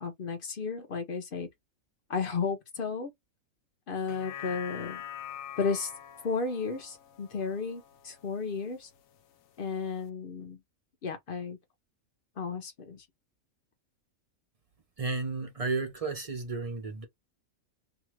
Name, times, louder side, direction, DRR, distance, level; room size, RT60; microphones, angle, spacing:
voice 1, 0.0-1.5 2.1-3.1 3.9-5.0 5.6-5.9 6.2-8.9 9.6-10.6 11.0-11.6 12.4-13.1, left 5 dB, 50° left, 0.7 m, -33 dB
sound 1, 4.0-8.5 9.0-9.1, left 10 dB, 70° left, 1.0 m, -44 dB
voice 2, 15.0-17.1, right 3 dB, 40° right, 0.5 m, -33 dB
2.8 x 2.3 x 3.1 m
omnidirectional pair, 1.5 m